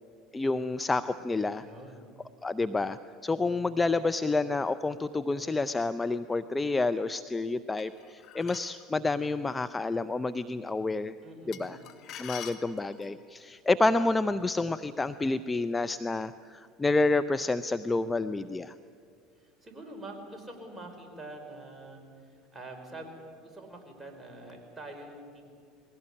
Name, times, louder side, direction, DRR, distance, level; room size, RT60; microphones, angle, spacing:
voice 1, 0.3-1.6 2.4-11.2 11.5-11.8 12.2-18.7, left 3 dB, 15° left, 12 dB, 0.6 m, -29 dB
voice 2, 1.6-2.1 11.2-11.9 19.4-25.4, right 1 dB, 15° right, 2 dB, 5.4 m, -45 dB
sound 1, 7.8-8.8 11.5-13.2, left 10 dB, 55° left, 1.8 m, -45 dB
21.0 x 17.5 x 9.9 m, 2.3 s
hypercardioid pair, 75°, 0 cm